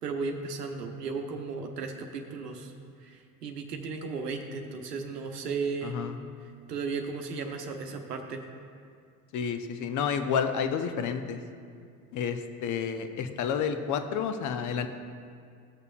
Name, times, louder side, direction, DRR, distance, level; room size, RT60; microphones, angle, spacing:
voice 1, 0.0-2.7 3.0-6.0 6.7-8.4, right 4 dB, 80° right, 4 dB, 0.9 m, -35 dB
voice 2, 5.8-6.2 9.3-11.4 12.1-14.9, left 7 dB, 40° left, 8 dB, 0.7 m, -30 dB
16.0 x 6.6 x 2.4 m, 2.2 s
figure-of-eight pair, 65°, 46 cm